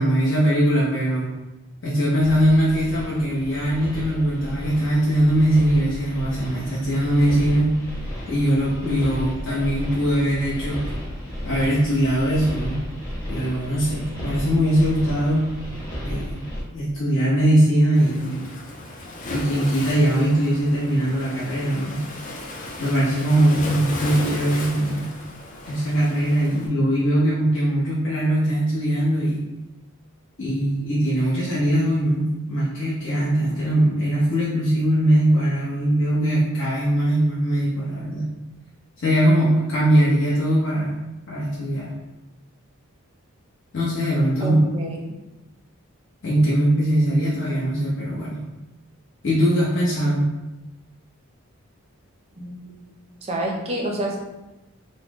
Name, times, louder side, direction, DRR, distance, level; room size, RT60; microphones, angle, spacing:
voice 1, 0.0-1.3 1.8-7.7 8.3-10.8 11.4-12.8 13.3-15.5 16.0-16.4 16.7-18.5 19.3-22.0 22.8-25.1 25.6-29.4 30.4-38.3 39.0-40.9 41.3-41.9 43.7-44.7 46.2-48.4 49.2-50.3, right 1 dB, 60° left, -9 dB, 0.8 m, -21 dB
sound 1, 2.2-16.6, equal, 15° left, 0.9 m, -34 dB
Waves surf, 17.9-26.7, left 1 dB, 35° left, 0.4 m, -35 dB
voice 2, 44.4-45.0 52.4-52.8 53.2-54.2, right 1 dB, 30° right, -1 dB, 0.5 m, -28 dB
3.8 x 2.1 x 3.5 m, 1.0 s
head